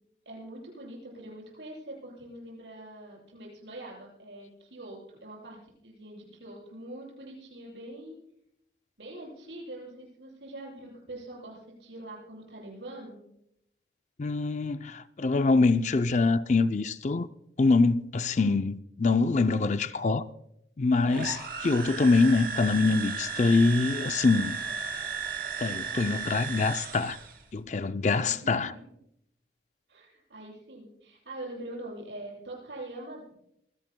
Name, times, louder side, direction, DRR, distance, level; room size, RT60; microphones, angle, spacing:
voice 1, 0.3-5.6 5.8-8.2 9.0-13.2 28.2-28.8 29.9-33.4, right 1 dB, 80° right, 7.6 m, -43 dB
voice 2, 14.2-17.3 17.6-20.3 20.8-24.6 25.6-27.2 27.5-28.7, left 3 dB, 40° left, 0.4 m, -24 dB
sound 1, 21.1-27.4, right 5 dB, 55° right, 2.7 m, -35 dB
25.0 x 16.5 x 2.2 m
head